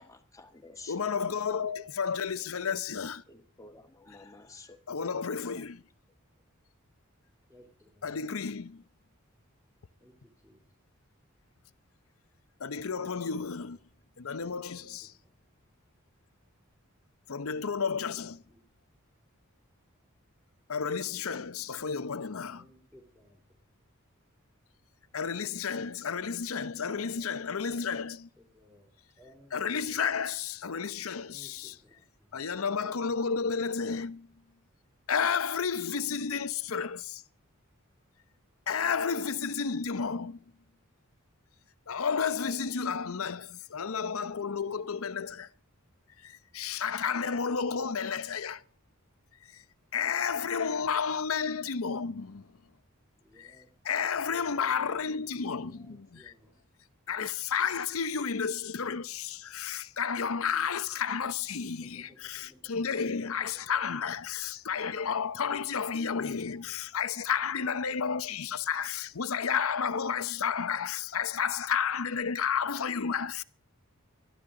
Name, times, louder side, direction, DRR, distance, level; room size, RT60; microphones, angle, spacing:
voice 1, 0.0-1.0 3.3-5.1 5.5-5.6, left 3 dB, 15° left, 1.5 m, -51 dB
voice 2, 0.9-3.2 4.9-5.8 8.0-8.8 12.6-13.8 14.2-15.1 17.3-18.4 20.7-22.6 25.1-28.3 29.5-31.7 32.3-34.3 35.1-37.2 38.7-40.4 41.9-45.5 46.2-48.6 49.5-49.6 49.9-52.5 53.4-53.5 53.8-56.3 57.1-73.4, left 6 dB, 75° left, 0.7 m, -32 dB
voice 3, 7.5-8.2 10.0-11.0 13.1-13.8 14.7-15.5 18.1-18.7 22.0-23.6 26.8-30.0 31.3-32.5 53.1-54.4 55.6-56.7 61.7-64.2 66.3-66.8, equal, 10° right, 3.4 m, -60 dB
22.0 x 13.0 x 3.8 m
head